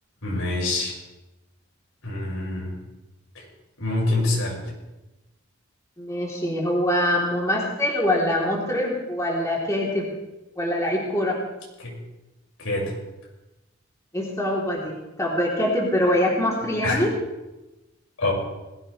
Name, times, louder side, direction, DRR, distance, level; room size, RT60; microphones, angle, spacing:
voice 1, 0.2-1.0 2.0-2.8 3.3-3.4 3.8-4.7 11.8-12.0 12.6-13.0 16.8-17.1 18.2-18.3, left 2 dB, 85° left, -3 dB, 6.3 m, -26 dB
voice 2, 6.0-10.1 10.6-11.4 14.1-17.1, left 1 dB, 15° left, -4 dB, 3.7 m, -24 dB
21.0 x 16.0 x 3.5 m, 1.0 s
head